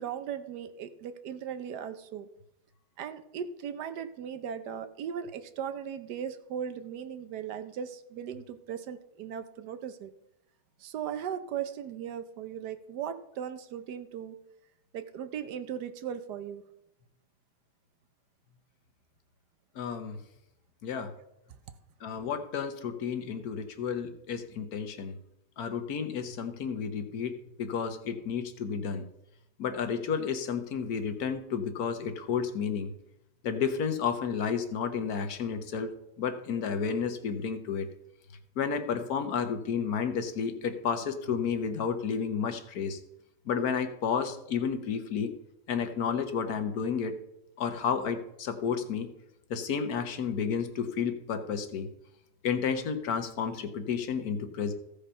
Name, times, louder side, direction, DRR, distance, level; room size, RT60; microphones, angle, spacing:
voice 1, 0.0-2.3 3.0-10.1 10.8-14.4 14.9-16.6, right 8 dB, 75° right, 11 dB, 1.3 m, -38 dB
voice 2, 19.8-20.2 20.8-21.1 22.0-25.1 25.6-29.0 29.6-32.9 33.4-35.9 36.2-37.9 38.6-43.0 43.5-45.3 45.7-47.2 47.6-49.1 49.5-51.9 52.4-54.7, left 6 dB, 65° left, 8 dB, 1.4 m, -31 dB
15.0 x 5.2 x 5.5 m, 0.84 s
omnidirectional pair, 1.8 m